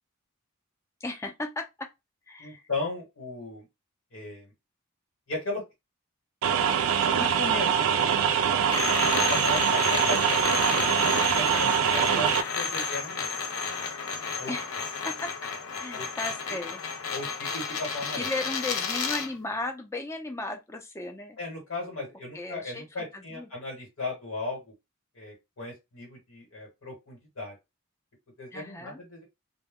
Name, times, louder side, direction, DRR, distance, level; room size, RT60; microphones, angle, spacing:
voice 1, 1.0-1.9 2.3-2.6 12.1-12.4 14.5-14.7 15.1-15.3 15.8-16.8 18.1-21.4 22.3-23.5 28.5-29.0, left 2 dB, 15° left, 0.4 m, -35 dB
voice 2, 2.4-3.7 4.1-4.5 5.3-5.6 7.1-10.9 11.3-12.3 12.5-13.3 14.4-14.5 15.9-16.1 17.1-18.3 21.4-24.7 25.1-27.5 28.4-29.2, left 2 dB, 70° left, 1.3 m, -36 dB
sound 1, 6.4-12.4, right 8 dB, 75° right, 0.3 m, -24 dB
sound 2, 8.7-19.3, left 5 dB, 85° left, 0.5 m, -31 dB
2.2 x 2.1 x 3.4 m
head